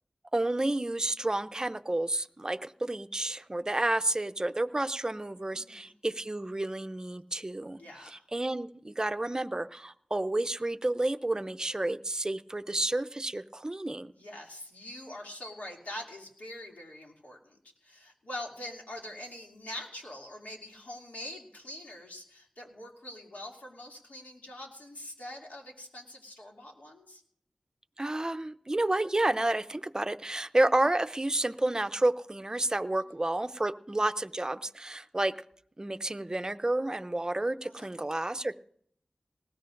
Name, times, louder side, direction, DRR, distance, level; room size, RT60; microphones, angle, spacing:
voice 1, 0.3-14.1 28.0-35.4 35.8-38.6, right 2 dB, 25° right, 11 dB, 0.6 m, -30 dB
voice 2, 5.5-5.9 7.8-8.2 14.2-17.6 17.8-27.2 37.6-37.9, left 1 dB, 85° left, -1 dB, 2.6 m, -44 dB
19.5 x 17.0 x 2.6 m, 0.64 s
wide cardioid pair, 50°, 3 cm